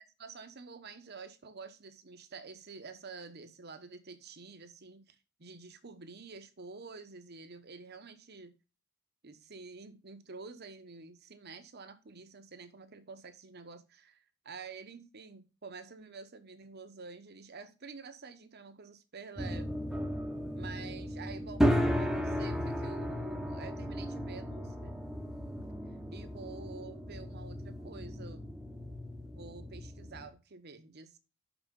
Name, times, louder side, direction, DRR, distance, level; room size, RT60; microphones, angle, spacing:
voice 1, 0.0-8.5 9.2-19.8 20.5-21.6 22.0-24.9 26.1-28.5 29.3-31.2, right 4 dB, 55° right, 1.1 m, -49 dB
sound 1, 19.4-30.3, equal, 5° right, 1.0 m, -35 dB
6.2 x 6.1 x 5.2 m
head